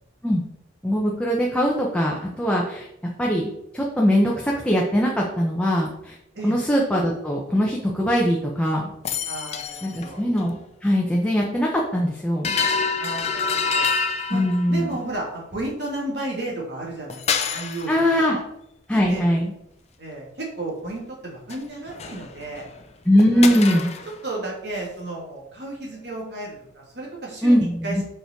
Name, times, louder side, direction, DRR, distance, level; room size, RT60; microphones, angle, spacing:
voice 1, 0.8-6.2 6.4-8.9 9.8-12.5 14.3-15.0 17.9-18.4 18.9-19.5 23.0-23.9 27.4-28.0, equal, 5° left, -3 dB, 0.9 m, -21 dB
sound 1, 9.0-10.1 10.4-10.5 12.4-14.9 17.1-18.0 21.5-21.6 21.9-22.8 23.2-24.2, left 5 dB, 35° left, 0.6 m, -27 dB
voice 2, 9.3-10.2 13.0-13.9 14.3-14.4 14.7-18.4 19.1-19.3 20.0-22.7 23.3-23.9 24.2-28.0, right 2 dB, 65° right, -3 dB, 2.8 m, -33 dB
7.0 x 5.3 x 4.6 m, 0.80 s
head